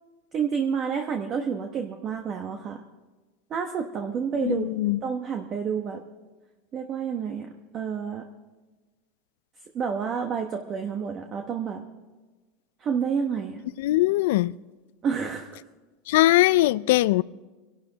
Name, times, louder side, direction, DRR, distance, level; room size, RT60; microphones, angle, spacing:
voice 1, 0.3-2.8 3.5-4.7 5.0-6.0 6.7-8.3 9.7-11.8 12.8-13.6 15.0-15.6, right 6 dB, 30° right, 1.1 m, -29 dB
voice 2, 4.4-5.0 13.8-14.5 16.1-17.2, left 17 dB, 75° left, 0.4 m, -21 dB
25.5 x 11.5 x 4.0 m
supercardioid pair, 145°, 0 cm